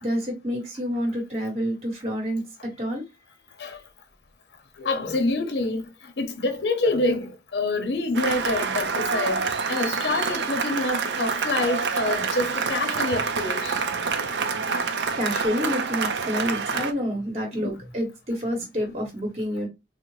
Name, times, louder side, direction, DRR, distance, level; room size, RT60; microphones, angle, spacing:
voice 1, 0.0-2.4 2.8-3.0 15.1-19.7, equal, 35° right, 1.0 m, -28 dB
voice 2, 4.8-5.8 6.2-13.7 17.5-17.6, left 2 dB, 75° left, 0.7 m, -26 dB
Cheering / Applause, 8.1-16.9, right 5 dB, 85° right, 0.5 m, -27 dB
3.6 x 2.0 x 3.0 m
head